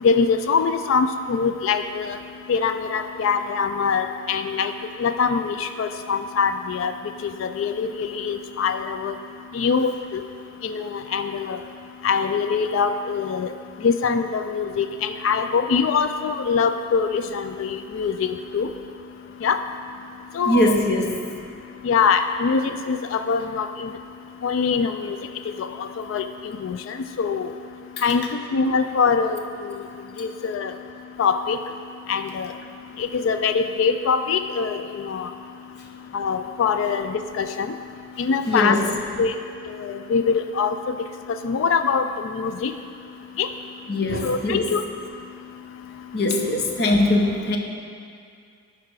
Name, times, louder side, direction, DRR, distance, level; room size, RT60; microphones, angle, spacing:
voice 1, 0.0-2.2 2.5-4.7 5.0-6.9 7.2-9.1 9.5-10.2 10.6-11.6 12.0-13.5 13.8-18.7 19.4-19.6 20.4-20.7 21.8-23.9 24.4-25.2 25.6-26.3 26.6-26.8 27.2-27.5 28.0-28.2 28.5-29.4 30.2-30.7 31.2-31.6 32.1-32.5 33.0-35.3 36.1-37.7 38.2-38.8 39.2-39.3 39.8-40.7 41.4-42.1 42.3-42.7 43.4-43.5 44.2-44.8, left 5 dB, 85° left, 8 dB, 0.3 m, -23 dB
voice 2, 20.5-21.3 28.0-28.1 38.5-38.9 43.9-44.7 46.1-47.6, left 1 dB, 55° left, 2 dB, 0.8 m, -21 dB
11.5 x 4.9 x 4.7 m, 2.4 s
head